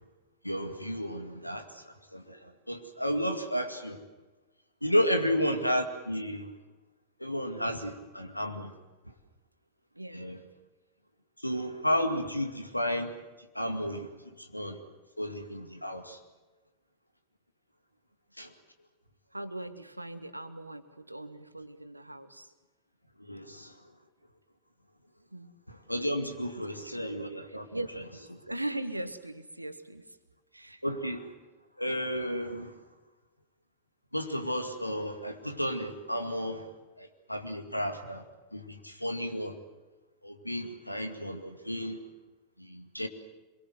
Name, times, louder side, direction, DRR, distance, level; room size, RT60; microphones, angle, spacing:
voice 1, 0.4-4.0 4.8-6.5 7.2-8.7 9.1-9.2 10.1-10.4 11.4-13.1 13.4-14.8 15.2-16.2 18.4-18.5 23.2-23.8 25.7-27.8 30.8-31.3 31.8-32.7 34.1-36.7 37.0-38.2 38.5-39.6 40.2-42.0 42.6-43.1, equal, 90° left, 2.2 m, -32 dB
voice 2, 9.9-10.5 19.3-22.5 23.4-23.5 25.3-25.5 26.6-26.7 26.9-27.0 27.5-30.2 30.5-30.8, right 1 dB, 85° right, 1.5 m, -40 dB
25.5 x 22.5 x 7.9 m
figure-of-eight pair, 90°, 0 cm